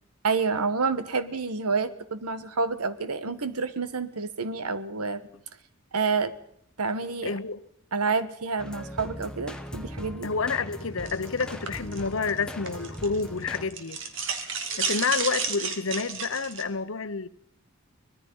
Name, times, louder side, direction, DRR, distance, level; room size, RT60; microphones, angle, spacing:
voice 1, 0.2-5.2 5.9-6.3 6.8-7.3 7.9-10.3, right 4 dB, 90° right, 1.4 m, -28 dB
voice 2, 7.2-7.6 10.2-14.0 14.8-17.3, left 4 dB, 60° left, 0.9 m, -29 dB
sound 1, 8.6-13.7, equal, 5° left, 1.3 m, -39 dB
sound 2, 11.1-13.2 13.5-16.6, right 5 dB, 55° right, 2.3 m, -32 dB
24.5 x 19.5 x 5.5 m
head